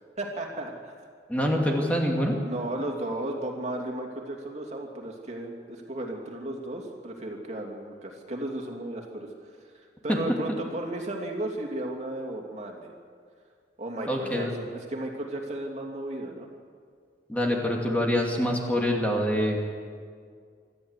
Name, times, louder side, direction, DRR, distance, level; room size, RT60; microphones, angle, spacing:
voice 1, 0.2-0.9 2.4-9.3 9.6-12.9 13.8-16.5, right 1 dB, 40° right, 0 dB, 2.9 m, -34 dB
voice 2, 1.3-2.4 10.1-10.2 14.1-14.5 17.3-19.6, equal, 10° left, -1 dB, 2.6 m, -25 dB
26.0 x 14.0 x 8.3 m, 2.1 s
head